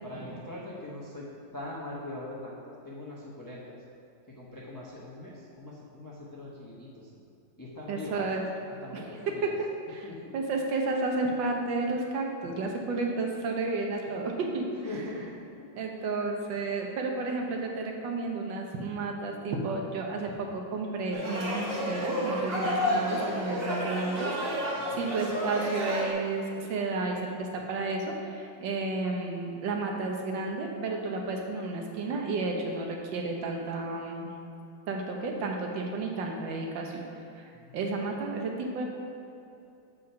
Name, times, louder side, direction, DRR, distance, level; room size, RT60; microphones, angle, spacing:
voice 1, 0.0-1.3 1.5-3.8 4.3-7.1 7.5-8.3 8.8-9.5 10.0-10.3 14.8-15.3 15.6-15.7 24.8-25.1 37.5-37.9, left 1 dB, 15° left, -6 dB, 0.6 m, -42 dB
voice 2, 7.9-8.4 8.9-9.0 9.4-9.5 9.9-10.1 10.3-14.6 15.8-24.3 24.6-34.3 34.9-37.0 37.4-38.8, right 3 dB, 70° right, 1 dB, 1.7 m, -32 dB
sound 1, 21.1-26.1, equal, 30° right, 1.6 m, -31 dB
8.1 x 5.0 x 5.6 m, 2.7 s
omnidirectional pair, 2.2 m